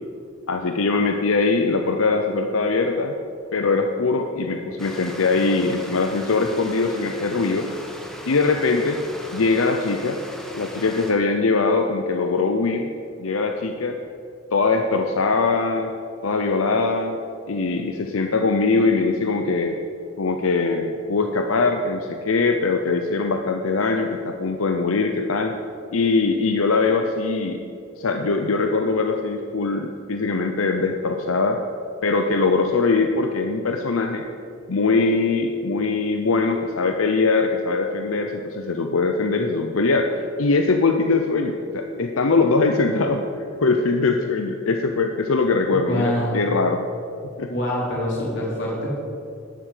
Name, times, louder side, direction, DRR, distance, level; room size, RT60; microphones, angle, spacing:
voice 1, 0.5-3.2 3.5-7.7 8.3-9.0 9.3-10.2 10.5-12.9 13.2-14.0 14.5-15.9 16.2-17.2 17.5-19.8 20.2-25.5 25.9-27.6 28.0-31.6 32.0-34.3 34.7-40.1 40.4-46.8 47.4-47.5, left 3 dB, 80° left, 5 dB, 0.7 m, -22 dB
Stream, 4.8-11.1, equal, ahead, 1.7 m, -38 dB
voice 2, 45.7-46.5 47.5-49.0, left 1 dB, 60° left, -4 dB, 3.5 m, -25 dB
11.5 x 7.5 x 8.3 m, 2.5 s
head